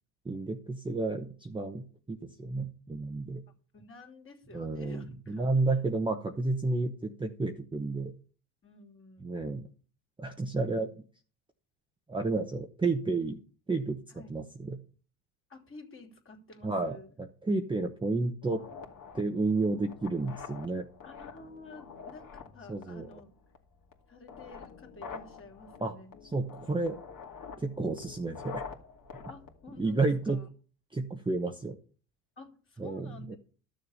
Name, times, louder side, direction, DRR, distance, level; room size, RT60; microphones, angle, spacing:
voice 1, 0.2-3.4 4.5-8.1 9.2-9.7 10.2-10.9 12.1-13.4 13.7-14.0 14.3-14.8 16.6-17.0 17.4-18.6 19.1-20.9 22.7-23.1 25.8-25.9 26.3-26.9 27.6-28.6 29.8-30.4 30.9-31.8 32.8-33.3, right 3 dB, 10° right, 4 dB, 1.0 m, -31 dB
voice 2, 3.7-5.8 8.6-9.5 14.1-14.4 15.5-17.1 21.0-23.3 24.1-26.2 29.3-30.5 32.4-33.3, left 3 dB, 30° left, 3 dB, 3.0 m, -51 dB
sound 1, 18.4-30.4, left 5 dB, 45° left, 2.4 m, -47 dB
12.5 x 6.8 x 5.6 m, 0.42 s
supercardioid pair, 95°, 45 cm